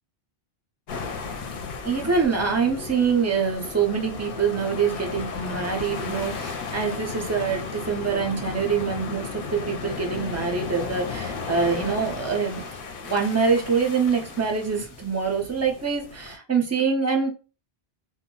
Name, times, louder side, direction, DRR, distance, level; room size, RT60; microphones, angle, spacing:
sound 1, 0.9-16.4, left 5 dB, 65° left, 0.7 m, -35 dB
voice 1, 1.8-12.7 13.0-17.3, right 5 dB, 25° right, 2 dB, 0.4 m, -25 dB
2.2 x 2.0 x 3.7 m, 0.33 s
omnidirectional pair, 1.1 m